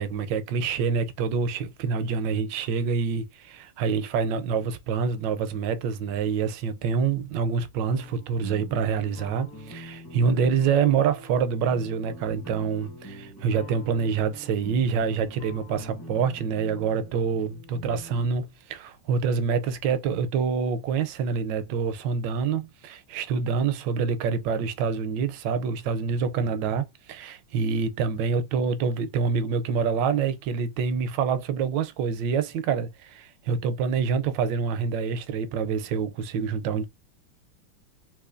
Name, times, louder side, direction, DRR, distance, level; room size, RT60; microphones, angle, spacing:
voice 1, 0.0-36.9, right 6 dB, 75° right, 1.2 m, -26 dB
sound 1, 7.8-18.3, equal, 15° left, 0.8 m, -44 dB
3.7 x 2.9 x 2.5 m
omnidirectional pair, 2.1 m